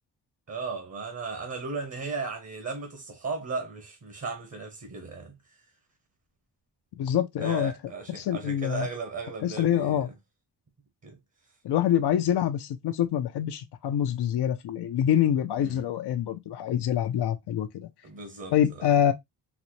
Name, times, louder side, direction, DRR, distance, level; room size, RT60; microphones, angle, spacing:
voice 1, 0.5-5.6 7.4-10.1 11.0-11.2 15.6-15.9 18.0-18.9, right 4 dB, 40° right, 0.9 m, -36 dB
voice 2, 7.0-7.7 8.1-8.9 9.4-10.1 11.6-17.9 18.5-19.1, left 10 dB, 80° left, 0.5 m, -25 dB
4.0 x 2.1 x 2.9 m
wide cardioid pair, 105°, 39 cm